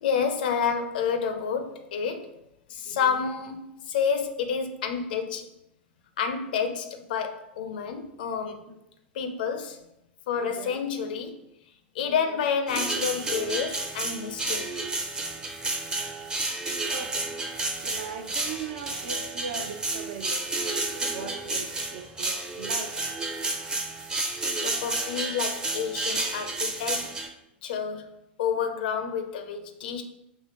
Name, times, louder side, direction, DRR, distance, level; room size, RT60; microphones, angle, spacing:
voice 1, 0.0-2.3 2.7-5.5 6.2-8.6 9.1-9.8 10.3-11.4 11.9-14.7 21.0-21.3 24.6-27.1 27.6-30.0, left 6 dB, 60° left, 7 dB, 0.5 m, -29 dB
voice 2, 2.9-3.2 6.5-6.7 8.7-8.8 10.4-10.8 12.0-12.4 16.7-17.3 17.8-20.4 21.1-23.2 28.6-28.9, right 5 dB, 55° right, 5 dB, 0.6 m, -39 dB
sound 1, 12.7-27.3, right 2 dB, 15° right, 0.6 m, -31 dB
5.7 x 2.8 x 2.8 m, 0.82 s
figure-of-eight pair, 90°, 6 cm